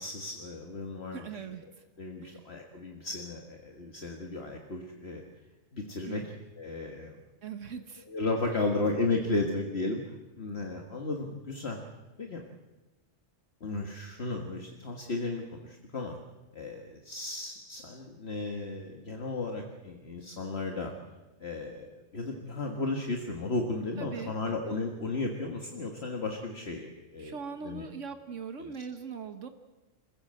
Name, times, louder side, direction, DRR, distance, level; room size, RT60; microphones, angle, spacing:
voice 1, 0.0-1.2 2.0-5.2 5.7-6.2 6.6-7.2 8.1-11.8 12.2-12.4 13.6-16.2 16.5-20.9 21.4-27.4 27.6-27.8 28.6-28.7, left 3 dB, 55° left, 2 dB, 1.9 m, -34 dB
voice 2, 1.1-1.8 2.2-2.4 6.1-6.3 7.4-8.1 8.5-8.7 24.0-24.8 27.2-29.5, right 6 dB, 75° right, 8 dB, 1.4 m, -41 dB
27.0 x 15.0 x 7.8 m, 1.2 s
omnidirectional pair, 1.3 m